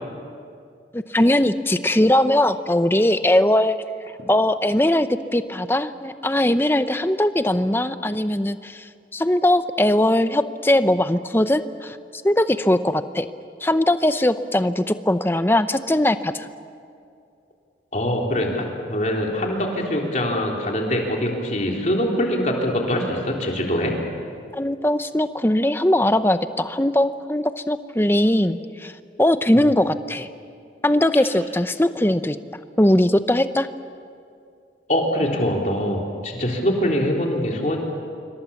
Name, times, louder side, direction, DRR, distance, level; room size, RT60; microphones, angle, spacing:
voice 1, 0.9-3.8 4.3-5.1 5.3-13.3 13.6-16.5 24.5-28.9 29.2-30.3 30.8-32.4 32.8-33.7, left 1 dB, 10° left, 11 dB, 0.7 m, -20 dB
voice 2, 17.9-23.9 34.9-37.8, equal, 40° left, 0 dB, 3.6 m, -23 dB
27.0 x 24.0 x 7.2 m, 2.4 s
head